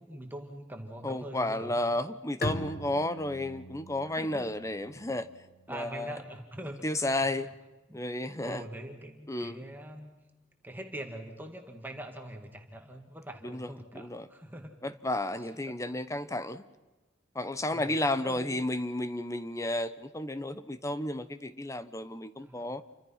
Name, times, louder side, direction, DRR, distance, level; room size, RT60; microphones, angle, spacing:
voice 1, 0.0-2.0 4.1-4.4 5.7-7.0 7.3-7.5 7.9-8.0 8.4-10.2 10.6-14.8 15.7-15.8 17.7-17.9 18.2-18.7 22.4-22.7, right 1 dB, 10° right, 3 dB, 2.1 m, -43 dB
voice 2, 1.0-5.3 5.7-6.2 6.8-7.5 7.9-8.6 9.3-9.6 13.4-14.3 14.8-16.7 17.3-22.8, left 1 dB, 15° left, 12 dB, 1.0 m, -32 dB
Bowed string instrument, 2.4-5.9, left 1 dB, 50° left, 2.0 m, -40 dB
29.5 x 25.0 x 5.8 m, 1.1 s
head